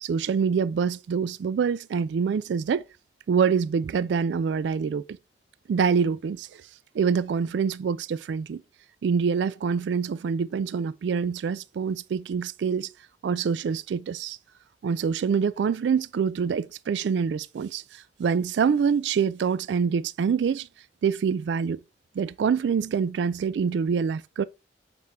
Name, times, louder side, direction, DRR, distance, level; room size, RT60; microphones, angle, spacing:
voice 1, 0.0-2.9 3.3-5.0 5.7-6.6 6.9-8.6 9.0-12.9 13.2-14.4 14.8-20.7 21.0-21.8 22.2-24.4, right 6 dB, 70° right, 0.3 m, -25 dB
7.5 x 4.4 x 3.5 m
head